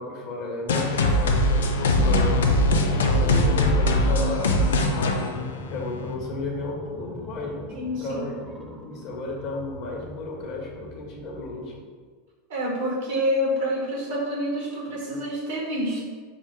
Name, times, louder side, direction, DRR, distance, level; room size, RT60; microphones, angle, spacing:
voice 1, 0.0-4.6 4.9-5.4 5.7-7.6 8.0-11.8, left 2 dB, 55° left, 0 dB, 1.1 m, -33 dB
sound 1, 0.7-6.1, left 1 dB, 75° left, 0.5 m, -21 dB
sound 2, 1.4-11.8, equal, 10° right, 0.8 m, -39 dB
voice 2, 7.7-8.2 12.5-16.0, equal, 70° right, -3 dB, 1.5 m, -27 dB
4.8 x 2.1 x 4.8 m, 1.5 s
hypercardioid pair, 90°, 0 cm